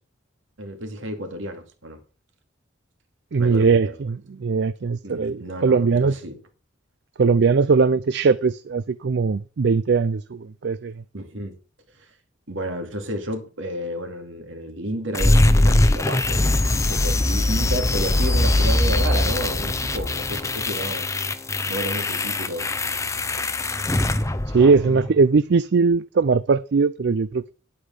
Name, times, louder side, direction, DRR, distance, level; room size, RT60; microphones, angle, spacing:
voice 1, 0.6-2.0 3.4-3.9 5.0-6.4 11.1-11.5 12.0-12.1 12.5-21.1 21.7-22.7, equal, 75° right, 2.4 m, -31 dB
voice 2, 3.3-6.2 7.2-11.0 24.5-27.5, right 4 dB, 60° right, 0.4 m, -20 dB
sound 1, 15.1-25.1, left 1 dB, 15° left, 0.6 m, -21 dB
10.0 x 8.3 x 5.5 m
head